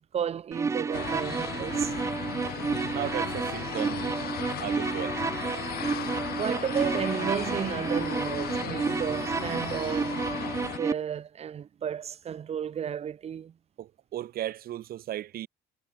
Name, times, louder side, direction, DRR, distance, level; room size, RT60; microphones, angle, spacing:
voice 1, 0.0-2.2 6.4-10.2 10.6-13.5, right 8 dB, 40° right, 0.8 m, -33 dB
sound 1, 0.5-10.9, right 5 dB, 15° right, 0.4 m, -31 dB
sound 2, 0.9-10.8, left 13 dB, 65° left, 1.9 m, -36 dB
voice 2, 2.9-4.0 4.6-5.2 6.0-6.1 13.8-15.5, right 13 dB, 60° right, 1.4 m, -36 dB
cardioid pair, 110°, 17 cm